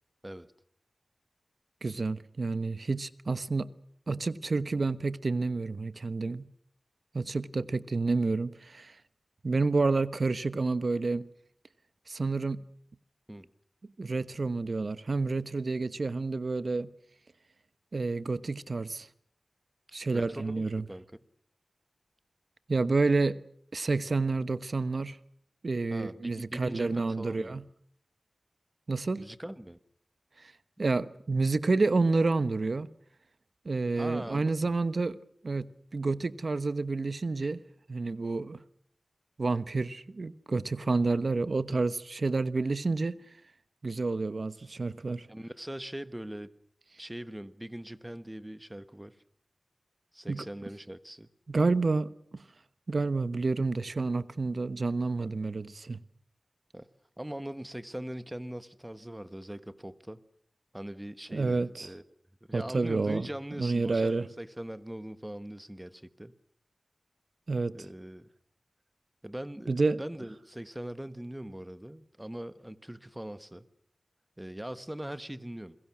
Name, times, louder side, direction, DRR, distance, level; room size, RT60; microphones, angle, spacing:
voice 1, 1.8-3.7 4.1-6.5 7.1-8.9 9.4-11.3 12.1-12.6 14.0-16.9 17.9-19.1 19.9-20.8 22.7-23.4 23.7-25.2 25.6-27.6 28.9-29.2 30.4-30.5 30.8-32.9 33.6-35.2 35.4-37.6 37.9-38.6 39.4-43.2 43.8-45.3 50.3-50.4 51.5-52.1 52.9-56.0 61.3-61.9 62.5-63.3 63.6-64.3 67.5-67.7 69.7-70.0, right 3 dB, 60° right, 1.1 m, -29 dB
voice 2, 20.1-21.0 25.9-27.6 29.2-29.8 34.0-34.8 45.3-46.5 47.0-49.2 50.1-51.3 55.2-55.3 56.7-56.9 57.2-60.2 60.7-62.0 62.5-66.3 67.7-68.3 69.2-73.6 74.4-75.8, right 1 dB, 10° right, 1.4 m, -41 dB
29.0 x 22.0 x 6.3 m
wide cardioid pair, 70°, 0 cm